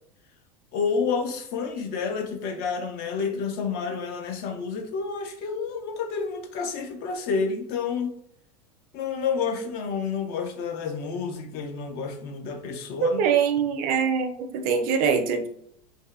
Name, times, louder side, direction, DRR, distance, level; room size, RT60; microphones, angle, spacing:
voice 1, 0.7-8.2 8.9-13.2, left 5 dB, 50° left, 0.5 m, -29 dB
voice 2, 13.0-15.5, right 6 dB, 50° right, 0.4 m, -23 dB
2.6 x 2.1 x 2.4 m
hypercardioid pair, 105°, 19 cm